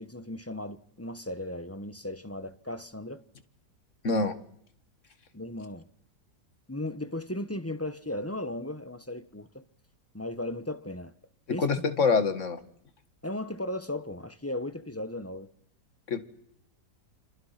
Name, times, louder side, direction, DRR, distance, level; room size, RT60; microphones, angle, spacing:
voice 1, 0.0-3.2 5.3-5.8 6.7-9.6 10.1-11.1 11.5-11.7 13.2-15.5, left 1 dB, 10° left, 0.8 m, -36 dB
voice 2, 11.5-12.6 16.1-16.2, left 4 dB, 45° left, 2.1 m, -25 dB
30.0 x 27.0 x 5.9 m
omnidirectional pair, 1.8 m